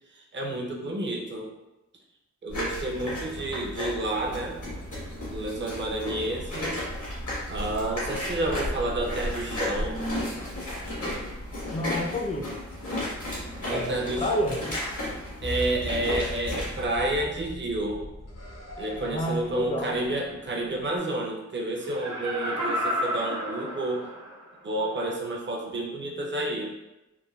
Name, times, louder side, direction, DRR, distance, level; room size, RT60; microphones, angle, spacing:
voice 1, 0.1-1.5 2.4-4.6 5.3-6.8 7.5-10.0 13.6-14.3 15.4-18.0 18.8-24.0 24.6-26.7, right 1 dB, 40° right, 0 dB, 0.6 m, -30 dB
sound 1, 2.5-16.9, left 1 dB, 85° left, 1.2 m, -33 dB
voice 2, 11.7-12.5 13.7-14.8 19.0-19.9, left 1 dB, 20° left, 2 dB, 0.4 m, -29 dB
sound 2, 15.4-21.0, left 1 dB, 60° left, 0.7 m, -39 dB
Laughter, 21.8-24.5 25.0-25.1, equal, 80° right, 0.6 m, -31 dB
3.2 x 2.2 x 2.3 m, 0.96 s
cardioid pair, 45°, 30 cm